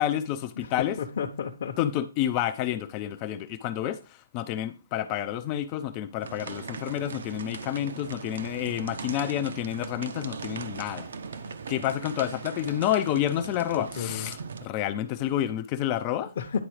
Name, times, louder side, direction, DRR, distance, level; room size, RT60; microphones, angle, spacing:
voice 1, 0.0-1.0 1.8-11.1 11.7-16.3, left 11 dB, 20° left, 0.4 m, -29 dB
voice 2, 0.6-1.8 13.8-14.3 16.4-16.6, left 7 dB, 40° left, 0.8 m, -32 dB
sound 1, 6.2-14.6, right 5 dB, 60° right, 0.8 m, -39 dB
10.0 x 3.9 x 4.9 m
hypercardioid pair, 170°, 0 cm